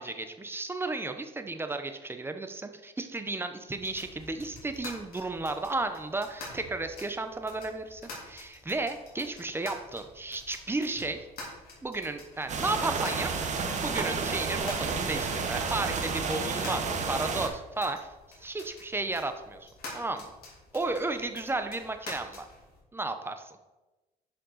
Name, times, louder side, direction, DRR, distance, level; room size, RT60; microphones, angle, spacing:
voice 1, 0.0-11.2 11.8-13.3 13.8-18.0 18.4-20.3 20.7-22.5 22.9-23.6, right 2 dB, 15° right, 7 dB, 0.8 m, -33 dB
sound 1, 3.7-22.8, left 2 dB, 65° left, 3.1 m, -48 dB
sound 2, 12.5-17.5, right 4 dB, 45° right, 1.1 m, -31 dB
10.0 x 5.3 x 4.0 m, 1.1 s
cardioid pair, 110°, 17 cm